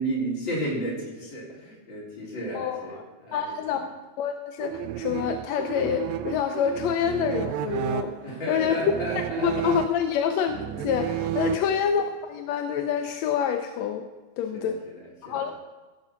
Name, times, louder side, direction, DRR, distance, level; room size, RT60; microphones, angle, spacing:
voice 1, 0.0-3.8 8.2-9.7 11.5-11.7 14.5-15.5, right 1 dB, 35° left, -5 dB, 4.2 m, -33 dB
voice 2, 2.5-3.0 3.3-3.9 4.2-8.2 8.5-8.8 9.1-14.1 14.4-14.8 15.2-15.5, left 8 dB, 75° left, 5 dB, 1.7 m, -27 dB
sound 1, 4.6-12.1, right 12 dB, 80° right, 1.7 m, -32 dB
15.5 x 7.0 x 5.7 m, 1.2 s
omnidirectional pair, 3.7 m